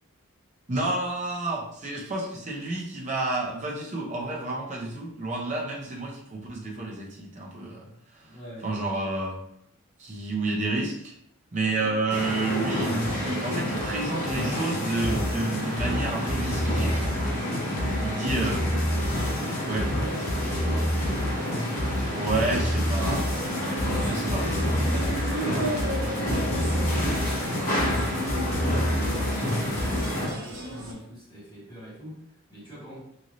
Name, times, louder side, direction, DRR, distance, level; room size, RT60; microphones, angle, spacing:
voice 1, 0.7-7.8 8.1-8.2 8.6-9.4 10.0-11.1 11.5-17.3 18.0-18.6 19.7-19.8 22.1-23.2 24.1-24.4, right 2 dB, 35° right, -2 dB, 0.6 m, -30 dB
voice 2, 8.2-8.7 17.7-18.7 19.1-21.2 23.9-33.1, equal, 20° left, -8 dB, 1.3 m, -43 dB
sound 1, 12.1-30.3, left 1 dB, 40° left, 1.0 m, -29 dB
sound 2, 12.8-30.2, equal, 65° left, 0.6 m, -29 dB
sound 3, 22.8-30.9, right 1 dB, 75° right, 0.9 m, -36 dB
3.0 x 2.6 x 2.6 m, 0.74 s
head